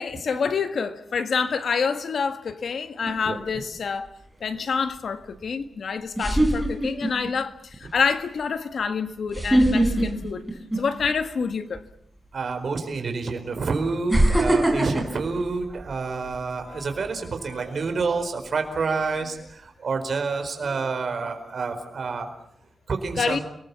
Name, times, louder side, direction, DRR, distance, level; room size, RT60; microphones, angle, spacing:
voice 1, 0.0-4.1 4.4-10.5 10.8-11.8 16.6-16.9 17.4-17.7 23.2-23.4, left 5 dB, 65° left, 1.6 m, -27 dB
sound 1, 3.0-3.5 5.4-5.5 6.1-7.3 7.7-8.0 9.3-11.2 11.5-11.8 12.8-12.9 14.1-16.4 16.8-17.1, right 1 dB, 5° right, 5.4 m, -22 dB
voice 2, 12.3-22.3 22.9-23.4, right 4 dB, 50° right, 4.6 m, -28 dB
29.5 x 21.0 x 7.1 m
wide cardioid pair, 160°, 0 cm